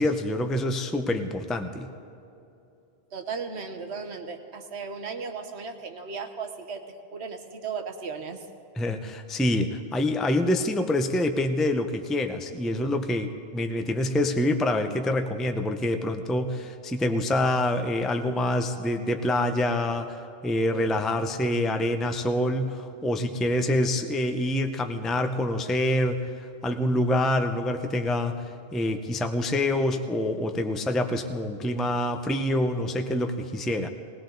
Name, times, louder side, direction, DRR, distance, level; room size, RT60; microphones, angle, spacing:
voice 1, 0.0-1.9 8.8-28.4 28.7-33.9, left 1 dB, ahead, 7 dB, 0.4 m, -26 dB
voice 2, 3.1-6.8 7.1-8.4, right 5 dB, 90° right, 6 dB, 1.3 m, -36 dB
20.0 x 17.5 x 3.9 m, 2.8 s
omnidirectional pair, 1.1 m